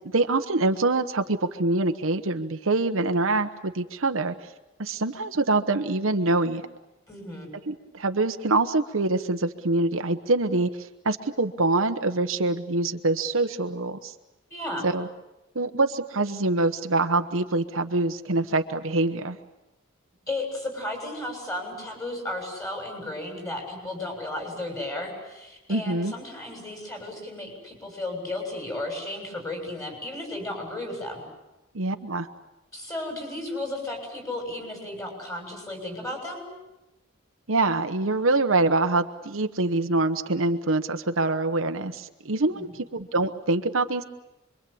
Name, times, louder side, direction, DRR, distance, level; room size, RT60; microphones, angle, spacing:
voice 1, 0.1-4.3 4.8-6.6 7.7-14.1 14.8-15.1 15.5-19.4 25.7-26.1 31.7-32.3 37.5-44.0, right 2 dB, 70° right, 7 dB, 1.1 m, -25 dB
voice 2, 7.1-7.5 14.5-14.9 20.3-31.2 32.7-36.4 42.4-42.7, left 1 dB, 15° left, 2 dB, 7.2 m, -34 dB
26.5 x 23.0 x 8.6 m, 0.98 s
head